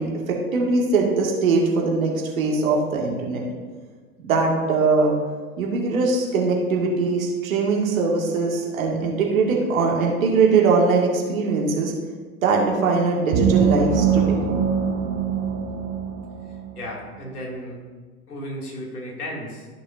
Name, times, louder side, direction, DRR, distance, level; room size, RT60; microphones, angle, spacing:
voice 1, 0.0-3.4 4.2-5.1 5.6-11.9 12.4-14.4, right 4 dB, 60° right, -1 dB, 2.1 m, -21 dB
sound 1, 13.3-16.9, right 6 dB, 45° right, 1.0 m, -22 dB
voice 2, 16.4-17.8 18.3-19.7, equal, 75° left, -2 dB, 2.6 m, -34 dB
14.5 x 6.2 x 2.6 m, 1.5 s
figure-of-eight pair, 100°, 46 cm